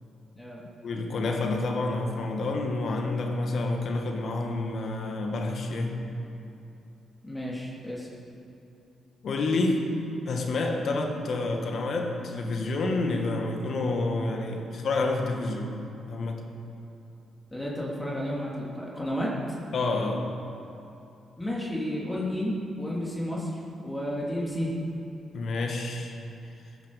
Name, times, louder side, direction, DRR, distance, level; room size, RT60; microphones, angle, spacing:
voice 1, 0.8-6.0 9.2-9.9 10.3-15.7 16.1-16.4 19.7-20.3 25.3-26.2, left 2 dB, 60° left, 3 dB, 2.1 m, -28 dB
voice 2, 7.2-8.1 17.5-19.3 21.4-24.7, equal, 15° left, -5 dB, 3.6 m, -32 dB
15.5 x 11.5 x 5.3 m, 2.9 s
hypercardioid pair, 45°, 0 cm